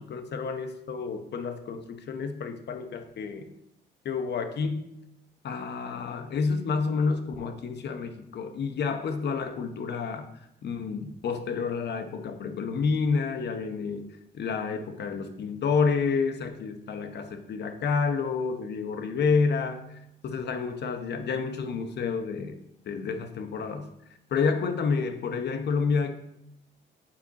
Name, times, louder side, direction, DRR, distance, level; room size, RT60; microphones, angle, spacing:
voice 1, 0.0-3.4 4.0-5.0 5.4-10.3 10.6-22.6 22.9-23.9 24.3-26.1, left 5 dB, 60° left, 8 dB, 0.8 m, -29 dB
8.6 x 4.2 x 4.0 m, 0.82 s
cardioid pair, 90°, 20 cm